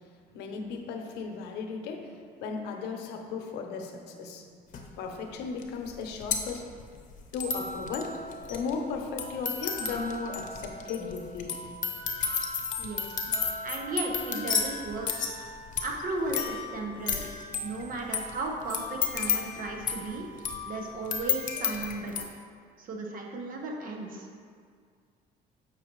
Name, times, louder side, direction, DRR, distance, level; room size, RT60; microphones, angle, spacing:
voice 1, 0.3-2.0 2.4-4.4 5.0-6.6 7.3-8.1 8.5-11.6 13.3-13.4 14.2-14.4, left 5 dB, 85° left, 4 dB, 0.8 m, -36 dB
sound 1, 4.7-4.8 5.6-5.7 5.9-22.2, left 6 dB, 50° left, 0.8 m, -33 dB
voice 2, 13.6-15.1 15.8-17.3 17.6-20.2 20.7-22.2 22.8-24.3, right 2 dB, 55° right, 1 dB, 1.0 m, -35 dB
7.2 x 5.8 x 3.1 m, 2.1 s
cardioid pair, 110°, 17 cm